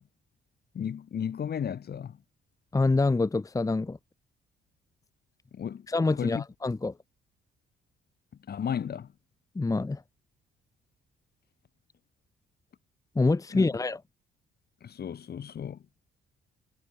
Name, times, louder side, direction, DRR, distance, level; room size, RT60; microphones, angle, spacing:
voice 1, 0.7-2.2 5.5-5.9 6.2-6.4 8.5-9.1 13.5-13.6 14.8-15.8, left 8 dB, 55° left, 2.8 m, -34 dB
voice 2, 2.7-4.0 5.9-6.9 9.5-10.0 13.1-14.0, left 3 dB, 15° left, 1.0 m, -26 dB
cardioid pair, 90°, 20 cm